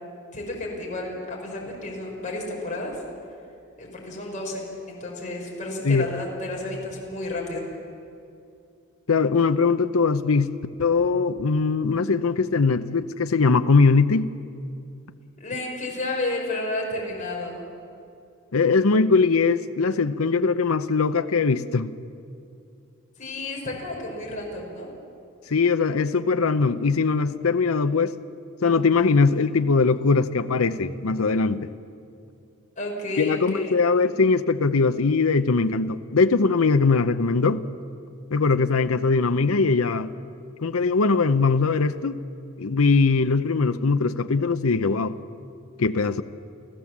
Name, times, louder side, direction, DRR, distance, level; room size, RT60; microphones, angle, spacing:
voice 1, 0.3-3.0 3.8-7.6 15.4-17.6 23.2-24.9 32.8-33.7, left 2 dB, 40° left, 4.8 m, -31 dB
voice 2, 9.1-10.5 10.8-14.3 18.5-21.9 25.5-28.1 28.6-31.7 33.2-37.6 38.3-40.1 40.6-42.2 42.6-45.1 45.8-46.2, left 4 dB, 85° left, 0.7 m, -21 dB
29.5 x 15.0 x 7.3 m
head